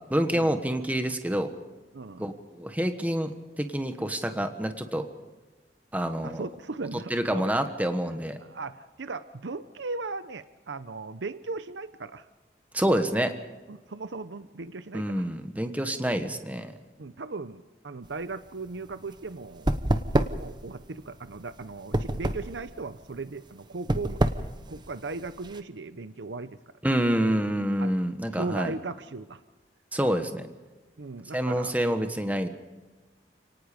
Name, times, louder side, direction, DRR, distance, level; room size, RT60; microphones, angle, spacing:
voice 1, 0.1-1.5 2.2-3.3 3.6-5.0 5.9-6.4 7.1-8.4 12.7-13.3 14.9-16.7 26.8-28.7 29.9-30.5 31.3-32.5, equal, 10° right, 7 dB, 1.3 m, -27 dB
voice 2, 1.9-2.2 6.2-7.5 8.4-12.3 13.7-15.3 17.0-19.8 20.4-24.2 24.7-26.6 27.8-28.0 28.3-29.4 31.0-31.8, right 3 dB, 90° right, 12 dB, 0.8 m, -37 dB
sound 1, 18.0-25.6, right 1 dB, 25° right, 1.0 m, -29 dB
29.5 x 18.5 x 5.2 m, 1.2 s
head